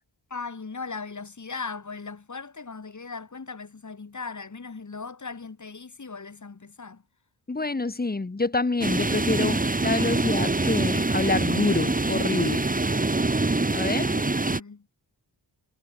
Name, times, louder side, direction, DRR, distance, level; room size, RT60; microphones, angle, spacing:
voice 1, 0.3-7.0 14.0-14.8, left 4 dB, 40° left, 3.1 m, -38 dB
voice 2, 7.5-12.6 13.7-14.1, left 3 dB, 20° left, 1.2 m, -27 dB
sound 1, 8.8-14.6, right 2 dB, 20° right, 1.6 m, -25 dB
wide cardioid pair, 80°, 45 cm